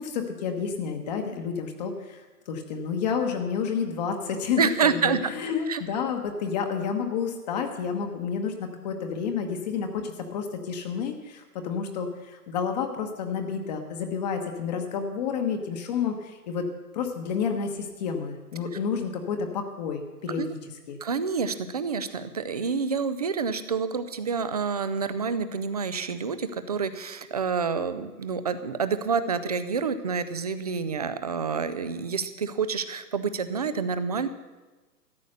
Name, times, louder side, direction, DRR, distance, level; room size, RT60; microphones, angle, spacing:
voice 1, 0.0-16.7 16.9-20.6 20.9-21.0, left 6 dB, 25° left, 4 dB, 1.1 m, -30 dB
voice 2, 4.6-5.2 5.7-5.8 20.4-20.5 21.0-34.3, right 5 dB, 25° right, 12 dB, 0.5 m, -28 dB
13.5 x 9.2 x 6.5 m, 1.2 s
hypercardioid pair, 140°, 47 cm